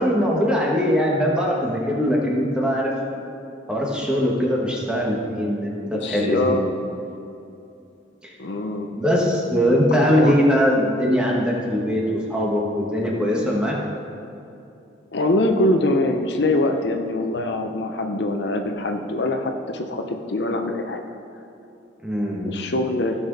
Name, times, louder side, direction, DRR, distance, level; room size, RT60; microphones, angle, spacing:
voice 1, 0.0-2.9 3.7-6.6 8.2-8.3 8.9-13.7 22.0-22.6, equal, 5° right, -3 dB, 1.4 m, -21 dB
voice 2, 5.8-6.6 8.4-8.9 9.9-10.3 15.1-21.0 22.4-23.2, left 1 dB, 60° left, 4 dB, 0.6 m, -23 dB
15.5 x 6.1 x 4.0 m, 2.7 s
head